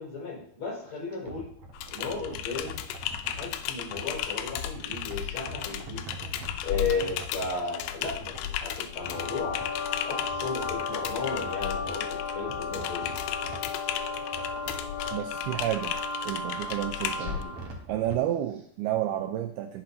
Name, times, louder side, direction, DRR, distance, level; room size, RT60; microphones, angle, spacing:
voice 1, 0.0-1.5 1.9-2.7 3.3-6.1 6.6-9.6 10.0-13.1 17.1-17.5, left 4 dB, 30° left, -3 dB, 5.1 m, -35 dB
sound 1, 0.9-4.1 4.5-9.9 10.2-12.0 12.4-13.9 14.2-15.2 17.2-18.2 18.5-18.6, right 1 dB, 60° right, 1.7 m, -44 dB
Typing, 1.7-17.4, left 11 dB, 80° left, 2.4 m, -35 dB
sound 2, 8.9-17.7, left 4 dB, 65° left, 2.7 m, -35 dB
voice 2, 15.1-15.9 16.3-17.4 17.9-19.8, right 12 dB, 80° right, 6 dB, 2.3 m, -30 dB
17.5 x 6.0 x 2.7 m, 0.63 s
omnidirectional pair, 4.9 m